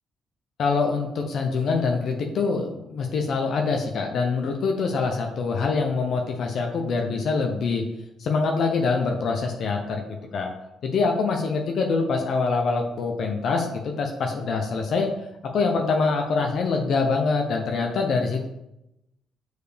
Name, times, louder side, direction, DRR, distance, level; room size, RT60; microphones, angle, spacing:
voice 1, 0.6-7.8 8.2-10.5 10.8-15.1 15.5-18.5, left 4 dB, 65° left, 2 dB, 0.8 m, -24 dB
6.9 x 4.7 x 3.4 m, 0.86 s
cardioid pair, 90°, 0 cm